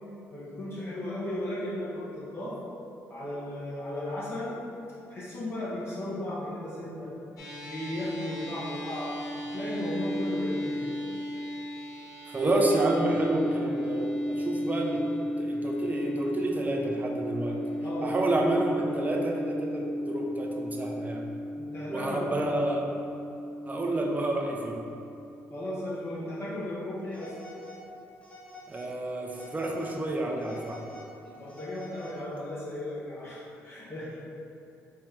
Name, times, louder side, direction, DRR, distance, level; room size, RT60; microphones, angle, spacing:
voice 1, 0.3-2.6 3.1-4.5 5.1-7.1 7.6-9.1 9.5-10.9 17.8-18.1 21.6-22.3 25.5-27.3 31.4-34.2, left 1 dB, 45° left, -9 dB, 1.3 m, -35 dB
sound 1, 7.4-25.9, equal, 65° left, 1.1 m, -34 dB
voice 2, 12.3-17.6 18.0-21.2 21.9-22.9 23.7-24.8 28.7-30.8, right 1 dB, 25° right, 0 dB, 0.7 m, -29 dB
Telephone, 27.1-27.8 28.2-28.9 29.3-30.0 30.4-32.4, left 1 dB, 20° left, 1.0 m, -47 dB
4.3 x 2.8 x 3.6 m, 2.8 s
supercardioid pair, 70°, 6 cm